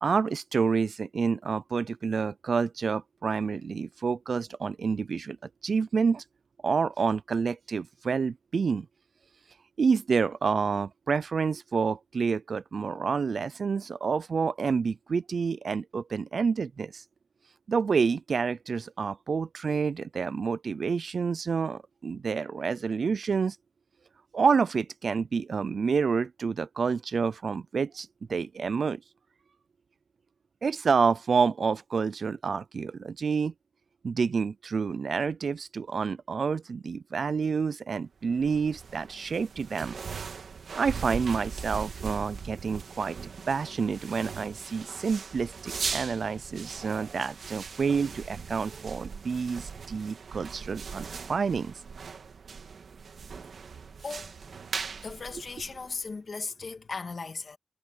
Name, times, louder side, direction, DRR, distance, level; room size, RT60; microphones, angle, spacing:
voice 1, 0.0-5.4 5.6-6.2 6.6-8.9 9.8-17.0 17.7-23.6 24.3-29.0 30.6-33.5 34.0-40.0 40.8-43.2 43.5-51.7, right 5 dB, 65° right, 0.3 m, -28 dB
sound 1, 38.3-56.1, right 5 dB, 85° right, 1.7 m, -40 dB
voice 2, 54.0-54.3 55.0-57.6, left 4 dB, 50° left, 2.3 m, -37 dB
wide cardioid pair, 140°, 0 cm